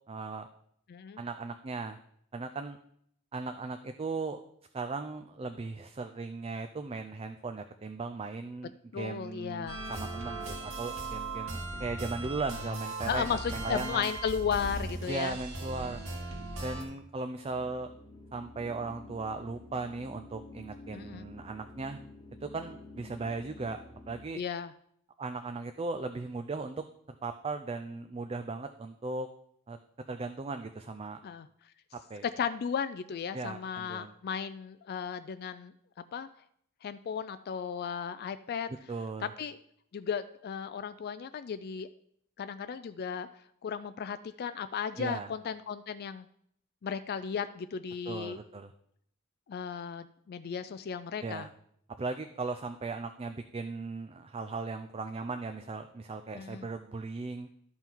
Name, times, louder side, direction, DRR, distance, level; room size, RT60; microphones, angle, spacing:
voice 1, 0.1-0.5 1.2-2.0 2.3-2.8 3.3-4.4 4.7-14.1 15.1-16.0 16.6-17.9 18.3-22.0 22.4-23.8 24.1-24.4 25.2-26.8 27.2-29.3 29.7-29.8 30.1-31.2 32.1-32.2 33.3-34.1 38.9-39.3 45.0-45.3 48.1-48.7 51.2-51.5 52.0-57.5, right 3 dB, 25° right, 7 dB, 0.4 m, -37 dB
voice 2, 0.9-1.2 8.9-9.8 13.1-15.3 20.9-21.3 24.3-24.7 31.2-31.5 32.2-35.7 36.1-36.3 36.8-38.7 39.2-39.6 39.9-41.9 42.4-43.3 43.6-46.3 46.8-48.4 49.5-51.5 56.3-56.7, left 7 dB, 45° left, 12 dB, 0.3 m, -35 dB
sound 1, 9.7-16.8, right 2 dB, 80° right, 2.0 m, -38 dB
sound 2, 17.4-24.3, left 2 dB, 20° left, 1.0 m, -50 dB
12.5 x 5.6 x 4.5 m, 0.69 s
head